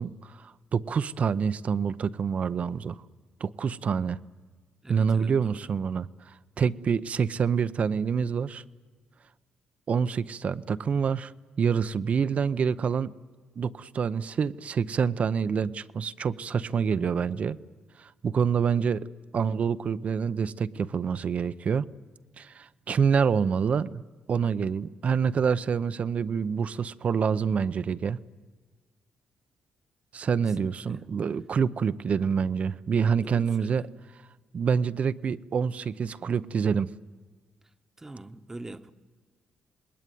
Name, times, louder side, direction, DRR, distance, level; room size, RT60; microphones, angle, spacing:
voice 1, 0.0-3.0 3.4-4.2 4.9-8.6 9.9-11.3 11.6-13.1 13.6-17.6 18.0-19.0 19.3-21.9 22.4-24.0 24.3-28.2 30.1-33.8 34.5-36.9, right 6 dB, 50° right, 0.7 m, -27 dB
voice 2, 4.8-5.7 30.5-31.0 33.2-33.9 38.0-38.9, right 2 dB, 15° right, 1.2 m, -44 dB
27.0 x 20.5 x 9.3 m
cardioid pair, 100°, 3 cm